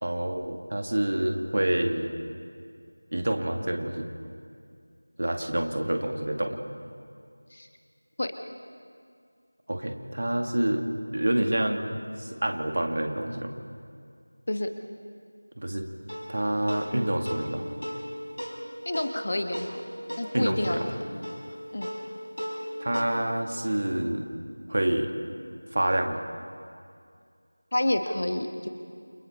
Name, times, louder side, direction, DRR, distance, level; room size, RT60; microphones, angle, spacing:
voice 1, 0.0-2.1 3.1-4.1 5.2-6.6 9.7-10.8 11.1-13.5 15.6-15.9 16.3-17.7 20.3-20.9 22.8-24.3 24.7-25.1 25.7-26.2, right 1 dB, 45° right, 4 dB, 2.0 m, -27 dB
sound 1, 16.1-23.1, equal, 75° left, 4.7 m, -37 dB
voice 2, 18.8-19.8 20.2-21.0 21.7-21.9 27.7-28.7, left 1 dB, 40° left, 6 dB, 1.5 m, -29 dB
29.0 x 27.5 x 4.3 m, 2.3 s
figure-of-eight pair, 175°, 0 cm